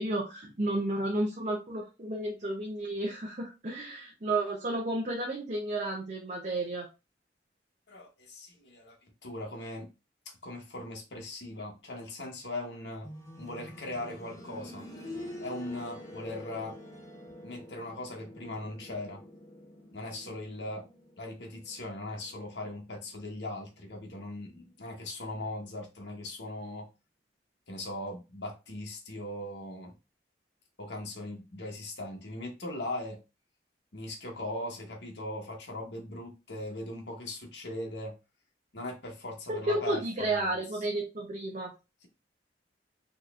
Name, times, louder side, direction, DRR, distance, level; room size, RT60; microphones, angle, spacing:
voice 1, 0.0-6.9 39.5-41.7, right 2 dB, 45° right, 0.8 m, -32 dB
voice 2, 7.9-9.0 9.2-9.9 10.4-13.1 13.4-14.8 15.4-16.8 17.4-19.2 19.9-20.8 21.2-26.9 27.7-29.9 30.8-33.2 33.9-38.1 38.7-40.6, left 1 dB, 80° left, 1.2 m, -39 dB
sound 1, 13.0-23.8 25.2-25.3, left 1 dB, 20° left, 0.8 m, -47 dB
4.0 x 3.0 x 2.5 m
head